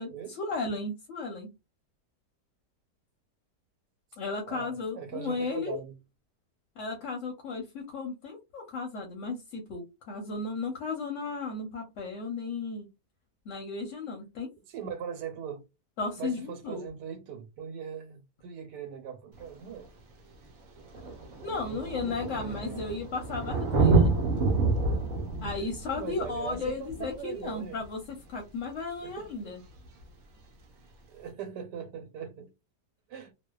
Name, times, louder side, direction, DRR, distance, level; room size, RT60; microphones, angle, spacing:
voice 1, 0.4-1.5 4.2-5.8 6.8-12.9 13.5-14.5 16.0-16.8 21.4-24.1 25.4-28.0 28.3-29.6, left 3 dB, 60° left, 0.8 m, -35 dB
voice 2, 4.5-5.9 14.7-15.6 16.2-19.9 21.3-23.0 25.9-27.9 29.0-29.3 31.1-32.5 33.1-33.3, right 7 dB, 85° right, 1.2 m, -40 dB
Thunder, 19.4-19.5 20.5-20.6 20.8-28.1 29.8-29.9, right 3 dB, 65° right, 0.9 m, -28 dB
2.7 x 2.1 x 2.2 m
omnidirectional pair, 1.8 m